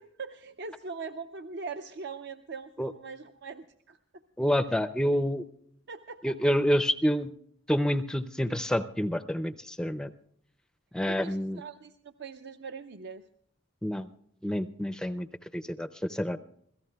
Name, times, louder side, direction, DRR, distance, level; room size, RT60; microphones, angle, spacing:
voice 1, 0.0-4.0 5.9-6.4 11.1-13.2, right 4 dB, 60° right, 8 dB, 0.6 m, -41 dB
voice 2, 4.4-5.4 6.2-7.3 7.7-10.1 10.9-11.6 13.8-14.1 14.4-15.3 15.5-16.4, equal, 5° left, 11 dB, 0.5 m, -28 dB
27.0 x 17.0 x 2.3 m, 0.68 s
head